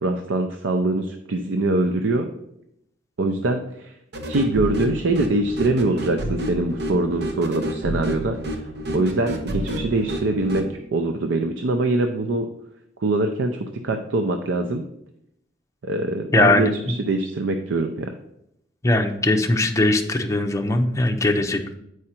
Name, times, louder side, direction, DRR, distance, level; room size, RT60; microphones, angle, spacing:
voice 1, 0.0-2.3 3.2-3.9 4.3-8.6 8.9-10.6 10.9-12.5 13.0-14.8 15.8-18.1, right 2 dB, 90° right, 5 dB, 0.5 m, -23 dB
sound 1, 4.1-10.7, equal, 60° right, 0.9 m, -30 dB
voice 2, 16.3-16.7 18.8-21.7, left 2 dB, 15° left, 4 dB, 0.6 m, -20 dB
7.7 x 4.9 x 4.3 m, 0.79 s
head